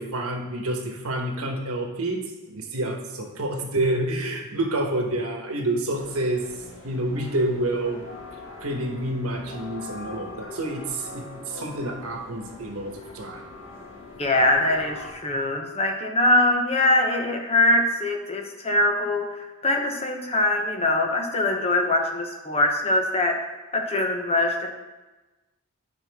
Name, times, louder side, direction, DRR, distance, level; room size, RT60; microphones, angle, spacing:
voice 1, 0.0-6.5 6.8-8.1 8.6-13.5, right 1 dB, 75° right, 2 dB, 1.3 m, -28 dB
sound 1, 5.9-15.1, left 2 dB, 60° left, 2.0 m, -42 dB
voice 2, 14.2-24.7, left 2 dB, 30° left, 3 dB, 0.8 m, -23 dB
9.5 x 5.8 x 3.5 m, 1.1 s
head